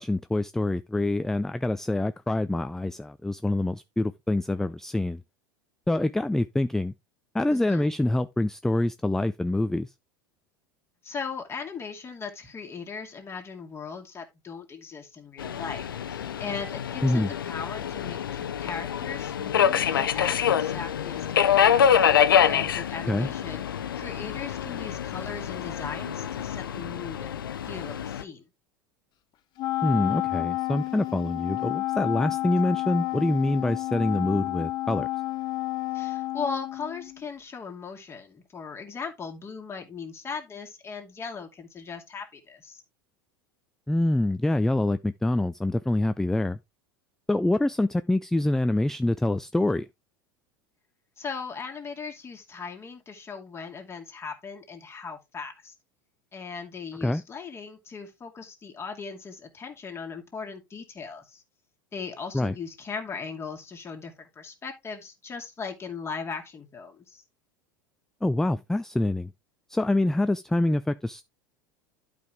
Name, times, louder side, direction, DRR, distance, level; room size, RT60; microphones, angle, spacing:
voice 1, 0.0-5.2 5.9-6.9 7.3-9.9 17.0-17.3 23.1-23.3 29.8-35.1 43.9-46.6 47.3-49.9 57.0-57.2 62.3-62.6 68.2-69.3 69.7-71.2, left 1 dB, 5° left, 0.4 m, -25 dB
voice 2, 7.5-7.9 11.0-21.7 22.4-28.5 35.9-42.8 51.2-55.7 56.3-61.4 61.9-67.2, left 5 dB, 20° left, 2.4 m, -38 dB
Subway metro underground, 15.4-28.2, left 8 dB, 75° left, 0.7 m, -26 dB
Wind instrument woodwind instrument, 29.6-37.2, left 18 dB, 40° left, 0.7 m, -30 dB
11.5 x 5.2 x 3.5 m
figure-of-eight pair, 80°, 12 cm